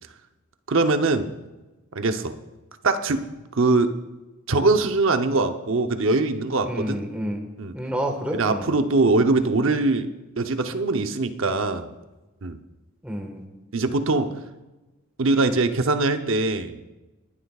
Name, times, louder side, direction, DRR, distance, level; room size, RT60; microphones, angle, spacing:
voice 1, 0.7-1.3 1.9-2.4 2.8-3.2 3.5-3.9 4.5-7.0 7.6-7.8 8.3-10.1 10.4-11.9 12.4-12.6 13.7-14.3 15.2-16.8, right 3 dB, 70° right, 8 dB, 0.8 m, -22 dB
voice 2, 6.6-7.5 7.7-8.7 13.0-13.5, equal, 5° right, 2 dB, 1.5 m, -29 dB
20.5 x 11.5 x 2.4 m, 1.1 s
head